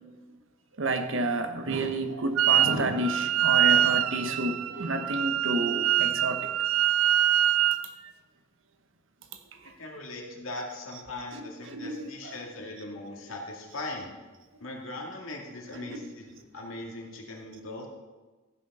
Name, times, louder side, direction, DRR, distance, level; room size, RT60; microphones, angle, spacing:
voice 1, 0.8-6.5 9.6-9.7 11.7-12.3 15.9-16.1, right 2 dB, 65° right, 7 dB, 1.1 m, -30 dB
Wind instrument woodwind instrument, 2.4-2.8 3.0-7.8, right 11 dB, 85° right, 0.4 m, -24 dB
voice 2, 9.8-14.1 14.6-17.9, left 2 dB, 80° left, 0 dB, 2.2 m, -39 dB
14.5 x 6.2 x 5.4 m, 1.3 s
head